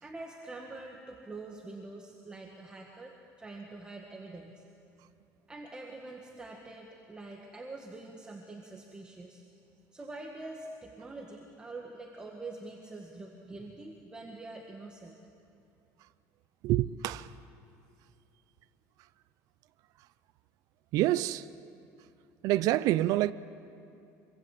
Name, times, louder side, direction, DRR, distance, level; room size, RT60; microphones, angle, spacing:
voice 1, 0.0-4.6 5.5-9.4 9.9-15.2, right 2 dB, 15° right, 1.8 m, -45 dB
voice 2, 16.6-17.3 20.9-21.5 22.4-23.3, right 15 dB, 60° right, 0.6 m, -27 dB
25.5 x 24.5 x 7.8 m
cardioid pair, 150°, 7 cm